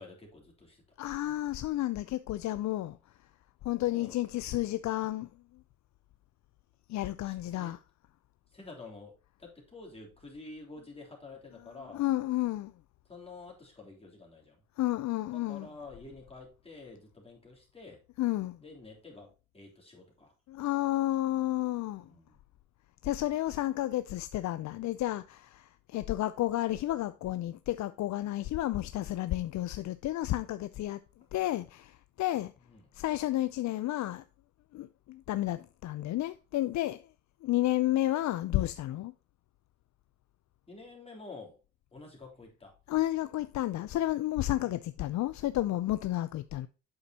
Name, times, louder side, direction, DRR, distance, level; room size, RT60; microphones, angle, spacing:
voice 1, 0.0-0.8 3.9-4.2 7.2-7.7 8.5-12.0 13.1-14.6 15.3-18.0 18.6-20.8 22.0-22.4 32.7-32.9 40.7-41.6 41.9-42.7 44.6-44.8, left 3 dB, 20° left, 3.3 m, -49 dB
voice 2, 1.0-3.0 3.6-5.3 6.9-7.8 11.9-12.7 14.8-15.7 18.2-18.6 20.5-22.0 23.0-31.0 31.3-32.5 32.9-34.2 34.7-37.0 37.4-39.1 42.9-46.7, left 15 dB, 65° left, 0.5 m, -31 dB
8.6 x 6.6 x 2.8 m
cardioid pair, 90°, 30 cm